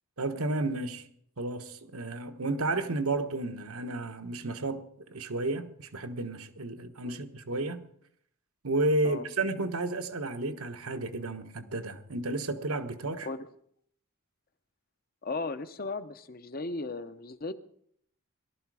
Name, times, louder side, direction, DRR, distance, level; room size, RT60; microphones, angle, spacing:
voice 1, 0.2-1.0 1.4-7.8 8.6-13.3, right 2 dB, 80° right, 1.2 m, -32 dB
voice 2, 15.2-17.5, left 3 dB, 45° left, 0.7 m, -36 dB
18.5 x 12.5 x 4.8 m
head